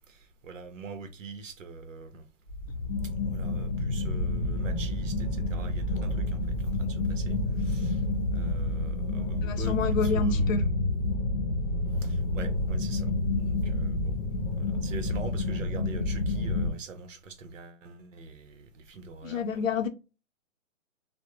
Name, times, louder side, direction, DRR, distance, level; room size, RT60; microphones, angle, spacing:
voice 1, 0.1-2.2 3.3-8.0 8.3-10.5 12.0-14.2 14.6-19.6, right 4 dB, 70° right, 0.7 m, -44 dB
sound 1, 2.5-16.7, left 2 dB, 30° left, 0.7 m, -29 dB
voice 2, 9.4-10.7 19.2-19.9, left 4 dB, 80° left, 0.5 m, -28 dB
2.5 x 2.0 x 2.9 m
hypercardioid pair, 180°, 39 cm